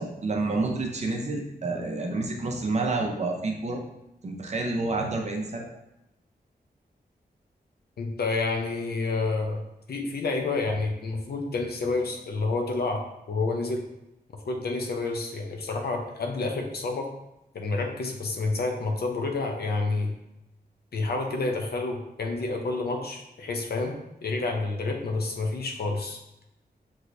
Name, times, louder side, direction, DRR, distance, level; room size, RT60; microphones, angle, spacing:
voice 1, 0.0-3.8 4.2-5.6, right 3 dB, 40° right, 1 dB, 0.7 m, -29 dB
voice 2, 8.0-9.6 9.9-13.0 13.3-13.8 14.5-17.1 17.5-20.1 20.9-23.9 24.2-26.2, left 3 dB, 70° left, 2 dB, 0.7 m, -29 dB
6.2 x 3.1 x 2.6 m, 0.88 s
wide cardioid pair, 125°, 17 cm